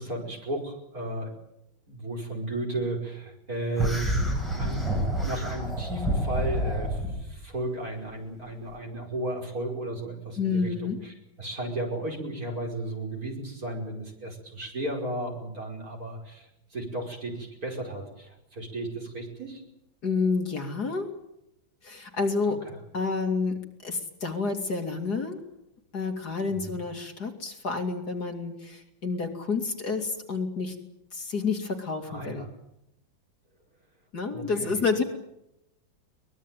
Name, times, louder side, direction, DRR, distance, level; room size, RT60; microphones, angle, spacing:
voice 1, 0.0-1.3 1.9-19.6 22.5-22.8 26.5-26.8 32.0-32.5 34.3-34.8, right 1 dB, 45° right, 1 dB, 5.8 m, -34 dB
sound 1, 3.8-7.2, equal, ahead, 7.1 m, -28 dB
voice 2, 10.4-11.0 20.0-21.1 21.8-22.6 22.9-23.6 23.8-25.4 25.9-30.7 31.1-32.5 34.1-35.0, left 4 dB, 50° left, 3 dB, 3.0 m, -29 dB
23.0 x 20.5 x 9.2 m, 0.83 s
omnidirectional pair, 2.2 m